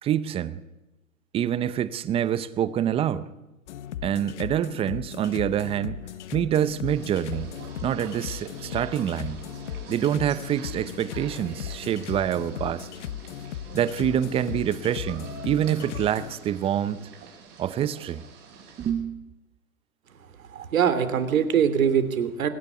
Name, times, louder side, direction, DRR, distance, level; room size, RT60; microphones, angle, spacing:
voice 1, 0.0-0.6 1.3-3.3 4.0-6.0 6.3-7.5 7.8-9.4 9.9-12.9 13.7-17.1 17.6-18.2 18.8-19.2, right 10 dB, 15° right, 0.6 m, -26 dB
sound 1, 3.7-16.3, left 11 dB, 55° left, 1.2 m, -37 dB
sound 2, 6.9-18.9, right 5 dB, 30° right, 7.8 m, -46 dB
voice 2, 20.5-22.5, right 8 dB, 70° right, 3.0 m, -23 dB
24.5 x 10.5 x 9.9 m
hypercardioid pair, 130°, 42 cm